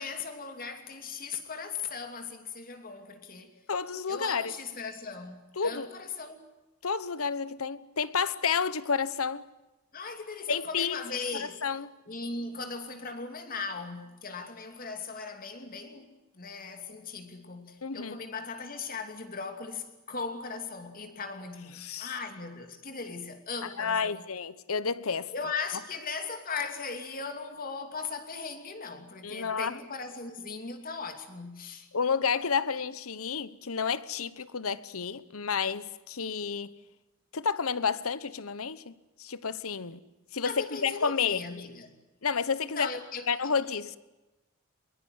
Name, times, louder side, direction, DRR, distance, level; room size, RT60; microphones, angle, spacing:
voice 1, 0.0-3.5 4.1-6.5 9.9-11.6 12.1-24.2 25.3-31.9 40.4-42.0 42.7-43.5, left 4 dB, 40° left, 2.8 m, -38 dB
voice 2, 3.7-4.5 5.6-5.9 6.8-9.4 10.5-11.0 11.3-11.9 17.8-18.2 21.7-22.1 23.6-25.3 29.2-29.8 31.9-36.7 37.3-38.9 39.2-40.0 40.3-41.4 42.2-42.9 43.3-44.0, left 6 dB, 75° left, 1.0 m, -30 dB
22.5 x 22.0 x 9.6 m
head